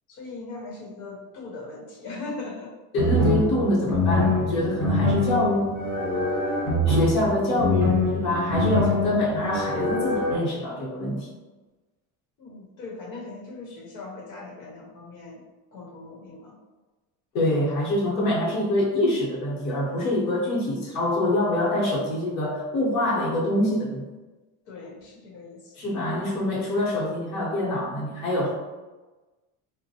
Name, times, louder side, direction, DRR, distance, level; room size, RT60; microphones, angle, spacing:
voice 1, 0.1-3.1 12.4-15.4 15.7-16.6 24.7-25.8 26.4-26.6, left 3 dB, 80° left, -2 dB, 1.0 m, -40 dB
voice 2, 2.9-5.7 6.9-11.3 17.3-24.0 25.8-28.5, left 1 dB, 40° left, -5 dB, 0.9 m, -25 dB
sound 1, 3.0-10.3, left 1 dB, 10° left, 0.7 m, -24 dB
4.0 x 2.1 x 2.7 m, 1.2 s
cardioid pair, 180°, 40 cm